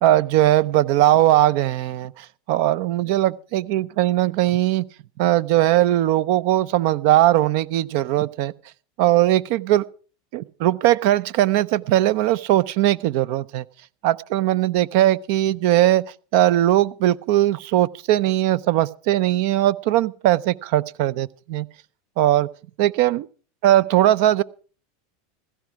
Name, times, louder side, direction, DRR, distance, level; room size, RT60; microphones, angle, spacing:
voice 1, 0.0-4.8 5.2-8.5 9.0-9.8 10.3-13.6 14.0-16.0 16.3-21.7 22.2-22.5 22.8-23.3 23.6-24.4, right 14 dB, 65° right, 0.7 m, -19 dB
16.0 x 14.0 x 4.7 m
hypercardioid pair, 110°, 0 cm